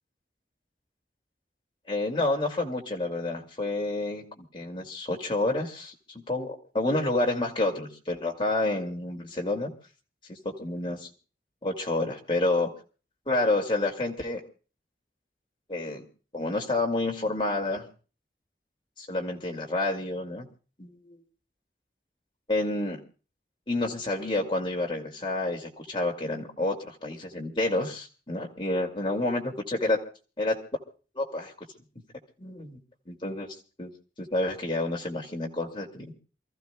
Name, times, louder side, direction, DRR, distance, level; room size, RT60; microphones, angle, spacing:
voice 1, 1.9-5.9 6.3-9.7 10.3-11.1 11.6-12.7 13.3-14.4 15.7-16.0 16.3-17.8 19.0-20.5 20.8-21.2 22.5-23.0 23.7-30.0 30.4-30.6 31.1-31.5 32.4-32.8 33.1-33.5 33.8-33.9 34.2-36.1, left 2 dB, 30° left, 0 dB, 2.4 m, -29 dB
28.5 x 14.5 x 2.3 m, 0.37 s
head